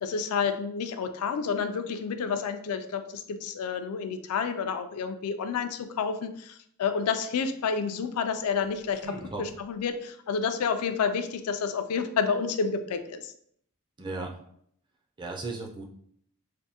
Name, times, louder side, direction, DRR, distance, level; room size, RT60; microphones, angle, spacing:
voice 1, 0.0-13.3, left 6 dB, 80° left, 8 dB, 0.4 m, -30 dB
sound 1, 8.4-10.1, equal, 80° right, 1.4 m, -47 dB
voice 2, 14.0-14.4 15.2-15.8, right 3 dB, 20° right, 1 dB, 0.4 m, -35 dB
3.4 x 2.6 x 2.8 m, 0.67 s
head